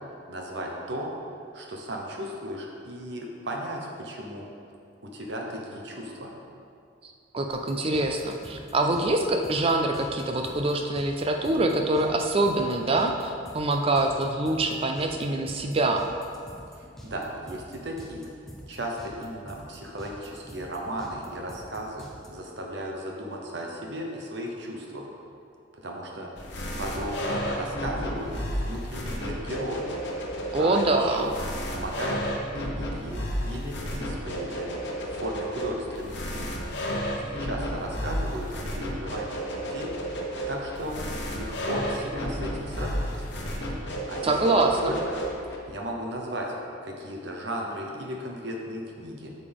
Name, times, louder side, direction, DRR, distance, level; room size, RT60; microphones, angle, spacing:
voice 1, 0.3-1.1 1.5-4.5 5.0-6.3 16.7-18.3 18.7-25.1 25.7-26.5 26.8-29.9 30.2-31.3 31.7-32.2 32.5-34.7 35.1-36.5 37.1-39.9 40.5-43.3 44.1-44.3 44.8-45.2 45.7-46.5 46.8-49.3, equal, 60° right, 0 dB, 1.0 m, -35 dB
voice 2, 7.0-16.1 30.5-31.3 44.2-45.0, right 2 dB, 30° right, 4 dB, 0.4 m, -25 dB
sound 1, 7.5-22.3, equal, ahead, 0.9 m, -46 dB
sound 2, 26.4-45.6, equal, 60° left, 1.1 m, -32 dB
8.6 x 6.7 x 3.6 m, 2.4 s
head